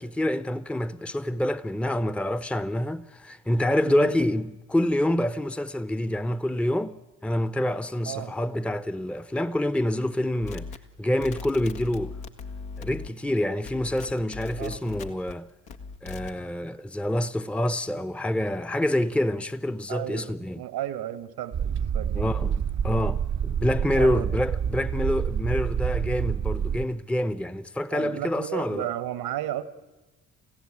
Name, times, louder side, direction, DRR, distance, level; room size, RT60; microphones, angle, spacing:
voice 1, 0.0-7.0 7.2-10.7 11.0-12.1 12.8-15.5 16.0-20.6 22.1-28.9, left 1 dB, 5° left, 0.9 m, -27 dB
voice 2, 3.8-4.1 8.1-8.3 14.6-14.8 19.9-22.3 24.0-24.3 27.9-29.6, right 12 dB, 70° right, 1.5 m, -34 dB
sound 1, 10.4-13.3 13.6-15.3 15.7-16.4, left 4 dB, 75° left, 1.7 m, -39 dB
sound 2, 21.5-26.8, right 8 dB, 45° right, 0.9 m, -27 dB
29.5 x 16.0 x 8.7 m
hypercardioid pair, 45°, 38 cm